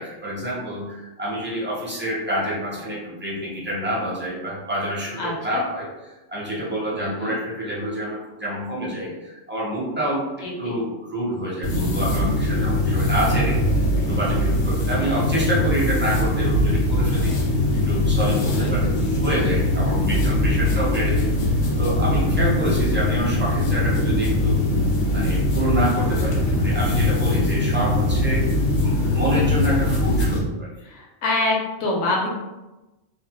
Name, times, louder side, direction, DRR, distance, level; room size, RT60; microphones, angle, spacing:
voice 1, 0.0-17.3 17.9-18.8 19.2-24.6 25.1-30.7, equal, 15° right, -7 dB, 0.4 m, -27 dB
voice 2, 5.2-5.6 6.9-7.3 10.4-10.8 18.5-19.0 26.2-26.6 30.8-32.3, left 2 dB, 65° left, -1 dB, 0.9 m, -26 dB
sound 1, 11.6-30.4, left 1 dB, 90° left, 1.1 m, -21 dB
2.7 x 2.0 x 2.8 m, 1.0 s
omnidirectional pair, 1.3 m